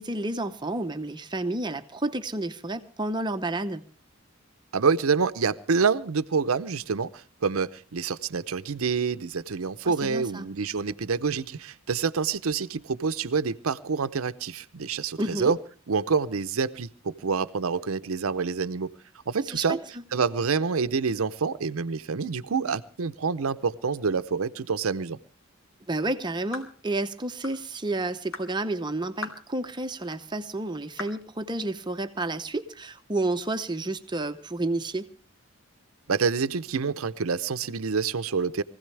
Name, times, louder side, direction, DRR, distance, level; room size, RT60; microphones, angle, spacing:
voice 1, 0.0-3.8 9.8-10.5 15.2-15.5 19.5-19.8 25.9-35.1, right 2 dB, 20° right, 0.8 m, -30 dB
voice 2, 4.7-15.6 15.9-18.9 19.3-19.8 20.1-25.2 36.1-38.6, right 5 dB, 85° right, 0.7 m, -27 dB
sound 1, 26.5-26.8 27.4-27.6 28.3-28.5 29.2-29.5 30.1-30.2 31.0-31.2, left 3 dB, 75° left, 2.6 m, -38 dB
23.0 x 16.0 x 3.3 m
head